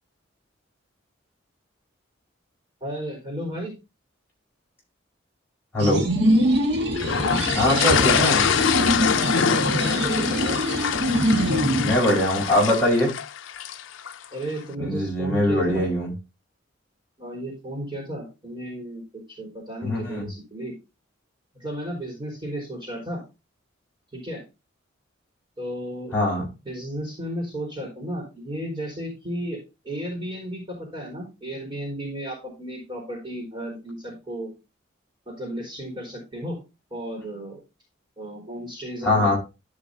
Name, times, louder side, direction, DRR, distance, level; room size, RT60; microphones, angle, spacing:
voice 1, 2.8-3.7 7.2-8.1 9.3-10.6 14.3-15.9 17.2-20.8 21.5-23.2 24.1-24.4 25.6-26.2 26.6-29.6 29.8-34.5 35.3-36.6 36.9-37.6 38.2-39.3, equal, 25° right, -1 dB, 4.3 m, -34 dB
voice 2, 5.7-6.0 7.5-8.5 11.8-13.1 14.8-16.1 19.8-20.2 26.1-26.5 39.0-39.4, left 1 dB, 10° left, -6 dB, 4.8 m, -22 dB
sound 1, 5.8-11.9, right 1 dB, 60° right, 1.7 m, -23 dB
sound 2, 7.0-14.2, left 8 dB, 75° left, 0.5 m, -25 dB
13.5 x 5.2 x 2.7 m, 0.28 s
head